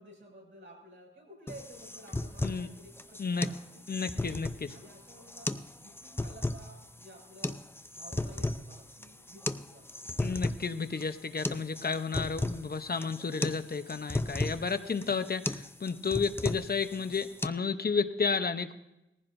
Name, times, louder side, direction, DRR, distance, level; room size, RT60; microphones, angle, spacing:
voice 1, 0.0-4.4 4.7-7.6 7.9-10.4 11.3-11.8 14.2-15.0 16.1-16.4, equal, 70° right, -2 dB, 6.1 m, -53 dB
sound 1, 1.5-17.5, left 2 dB, 10° left, 0.5 m, -36 dB
voice 2, 3.9-4.7 10.2-18.8, left 5 dB, 50° left, 10 dB, 0.8 m, -32 dB
20.0 x 15.0 x 2.6 m, 0.91 s
wide cardioid pair, 85°, 20 cm